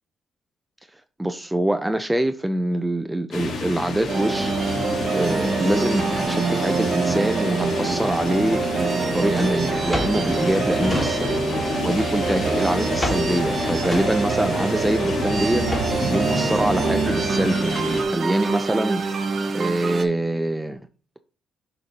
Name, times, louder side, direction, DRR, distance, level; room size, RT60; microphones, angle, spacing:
voice 1, 1.2-4.6 5.1-8.8 9.1-19.0 19.5-20.8, right 1 dB, 10° right, 0.5 m, -25 dB
sound 1, 3.3-18.0, left 3 dB, 70° left, 1.9 m, -29 dB
sound 2, 4.1-20.0, right 4 dB, 45° right, 0.8 m, -25 dB
Drawer open or close, 8.5-11.6 11.9-16.1, equal, 25° left, 2.5 m, -32 dB
7.1 x 5.1 x 2.9 m
cardioid pair, 90°, 0 cm